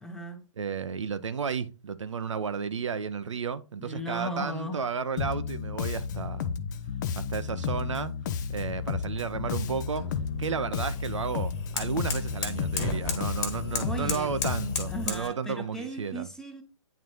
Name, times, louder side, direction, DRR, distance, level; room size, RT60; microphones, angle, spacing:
voice 1, 0.0-0.4 3.8-4.8 13.7-14.3 14.9-16.6, equal, 5° left, 0.9 m, -36 dB
voice 2, 0.6-6.5 7.2-8.1 8.5-10.0 10.4-16.3, right 6 dB, 65° right, 0.6 m, -32 dB
Bass guitar, 5.2-15.1, left 7 dB, 35° left, 0.6 m, -33 dB
sound 1, 8.5-15.3, left 4 dB, 20° left, 1.5 m, -36 dB
9.3 x 3.9 x 3.1 m
figure-of-eight pair, 125°, 17 cm